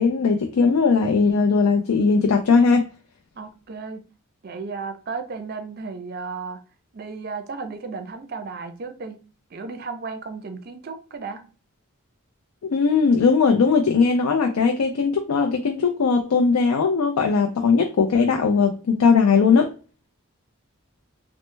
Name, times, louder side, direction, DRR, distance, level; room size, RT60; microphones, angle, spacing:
voice 1, 0.0-2.9 12.6-19.7, left 5 dB, 85° left, 0.4 m, -19 dB
voice 2, 3.4-4.0 4.4-6.6 6.9-9.2 9.5-11.4, right 4 dB, 45° right, 0.4 m, -34 dB
3.1 x 2.1 x 3.1 m
head